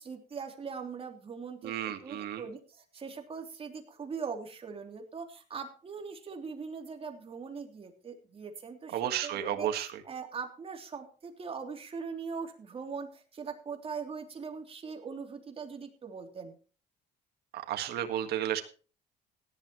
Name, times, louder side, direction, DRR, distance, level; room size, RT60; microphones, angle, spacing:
voice 1, 0.0-1.7 2.0-9.7 10.0-16.6, right 5 dB, 35° right, 3 dB, 3.2 m, -41 dB
voice 2, 1.6-2.4 8.9-9.9 17.5-18.6, right 11 dB, 70° right, 6 dB, 1.8 m, -32 dB
17.0 x 11.5 x 3.1 m, 0.38 s
cardioid pair, 110°, 17 cm